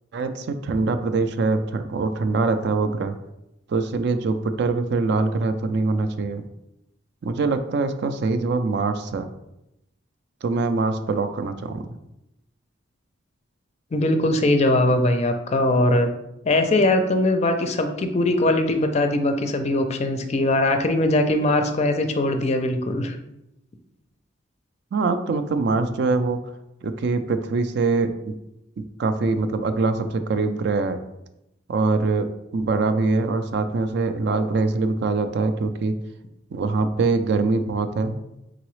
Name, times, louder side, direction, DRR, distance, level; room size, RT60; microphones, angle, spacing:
voice 1, 0.1-3.2 3.7-6.4 7.2-9.3 10.4-12.0 24.9-26.4 26.8-28.3 28.8-31.0 31.7-35.9 36.5-38.2, right 3 dB, 60° right, 9 dB, 0.4 m, -23 dB
voice 2, 13.9-16.1 16.4-23.2, left 1 dB, 35° left, 6 dB, 0.4 m, -21 dB
3.9 x 3.8 x 3.1 m, 0.87 s
head